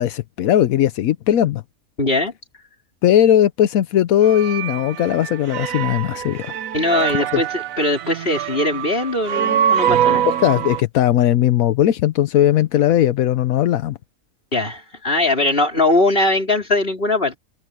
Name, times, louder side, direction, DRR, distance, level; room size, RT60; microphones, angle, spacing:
voice 1, 0.0-1.6 3.0-6.6 10.2-14.0, left 11 dB, 85° left, 1.2 m, -18 dB
voice 2, 2.0-2.3 6.7-10.2 14.5-17.4, left 2 dB, 45° left, 4.7 m, -20 dB
sound 1, 4.2-10.8, right 9 dB, 80° right, 1.2 m, -23 dB
omnidirectional pair, 1.4 m